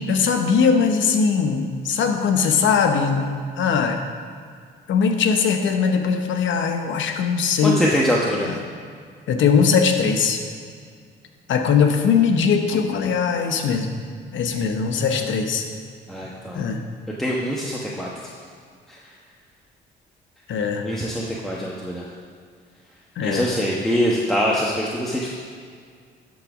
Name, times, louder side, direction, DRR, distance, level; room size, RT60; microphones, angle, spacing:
voice 1, 0.1-4.0 4.9-7.8 8.5-8.6 9.3-10.4 11.5-13.9 14.3-15.6 16.5-16.8 20.5-20.9 23.2-23.5, left 6 dB, 75° left, 5 dB, 0.9 m, -20 dB
voice 2, 7.6-8.5 15.1-15.2 16.1-16.6 17.2-18.1 18.9-19.0 20.8-22.1 23.2-25.3, equal, ahead, -5 dB, 1.1 m, -24 dB
11.5 x 4.1 x 6.1 m, 2.1 s
cardioid pair, 90°, 20 cm